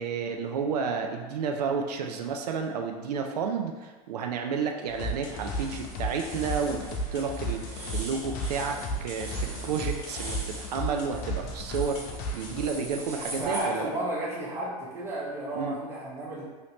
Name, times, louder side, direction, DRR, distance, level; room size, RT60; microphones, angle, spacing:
voice 1, 0.0-12.0 12.3-13.9 15.5-15.8, right 5 dB, 90° right, 3 dB, 0.4 m, -31 dB
sound 1, 4.9-13.6, right 1 dB, 40° right, 1.1 m, -42 dB
sound 2, 5.0-12.7, right 1 dB, 40° left, 0.5 m, -34 dB
voice 2, 13.4-16.4, right 1 dB, 10° right, -6 dB, 0.8 m, -32 dB
3.1 x 2.8 x 2.8 m, 1.3 s
supercardioid pair, 135°, 20 cm